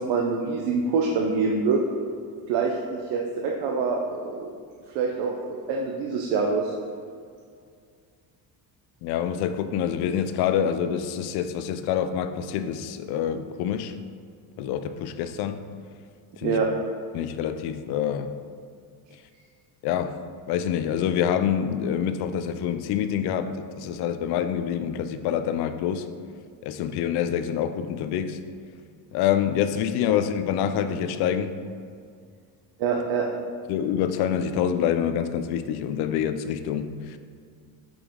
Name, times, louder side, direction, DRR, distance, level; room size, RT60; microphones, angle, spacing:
voice 1, 0.0-1.8 2.5-4.5 4.9-6.7 16.4-16.7 32.8-33.3, right 4 dB, 75° right, 1 dB, 0.7 m, -25 dB
voice 2, 9.0-13.9 14.6-15.6 16.4-16.6 17.1-18.3 19.8-20.2 20.5-26.1 26.6-28.4 29.1-31.5 33.7-37.2, left 9 dB, 65° left, 10 dB, 0.5 m, -26 dB
5.1 x 5.1 x 3.6 m, 2.2 s
cardioid pair, 165°, 41 cm